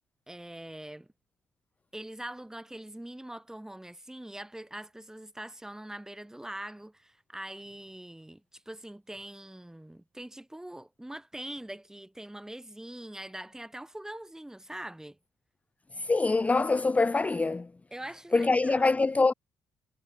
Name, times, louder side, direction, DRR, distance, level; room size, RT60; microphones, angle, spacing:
voice 1, 0.3-1.1 1.9-15.2 17.9-19.0, right 1 dB, 10° right, 3.7 m, -43 dB
voice 2, 15.9-17.7 18.3-19.3, left 3 dB, 20° left, 0.6 m, -24 dB
hypercardioid pair, 55°, 7 cm